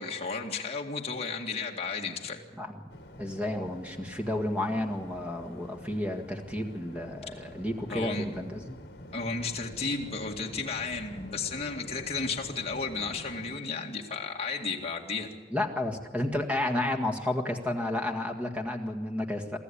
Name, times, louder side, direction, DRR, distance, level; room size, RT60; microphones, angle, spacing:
voice 1, 0.0-2.4 7.9-8.3 9.1-15.3, left 4 dB, 30° left, -1 dB, 2.1 m, -33 dB
Waves surf, 2.9-13.6, left 1 dB, 55° left, 2.4 m, -47 dB
voice 2, 3.2-8.8 15.5-19.6, left 1 dB, 5° right, 4 dB, 1.8 m, -31 dB
24.0 x 14.0 x 10.0 m, 1.4 s
head